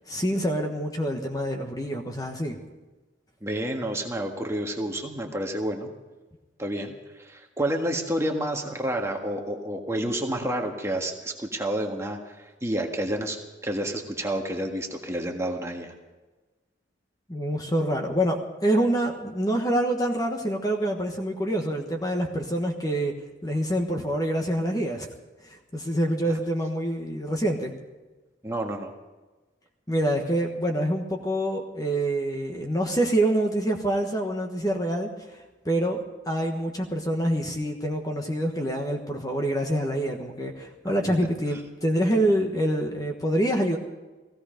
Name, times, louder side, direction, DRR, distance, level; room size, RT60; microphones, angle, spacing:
voice 1, 0.1-2.6 17.3-23.1 23.4-25.1 25.4-27.7 29.9-43.8, right 1 dB, 20° left, 2 dB, 1.3 m, -26 dB
voice 2, 3.4-5.9 6.6-15.9 28.4-28.9 41.0-41.1, right 1 dB, 15° right, 2 dB, 1.6 m, -29 dB
17.0 x 16.5 x 5.1 m, 1.2 s
head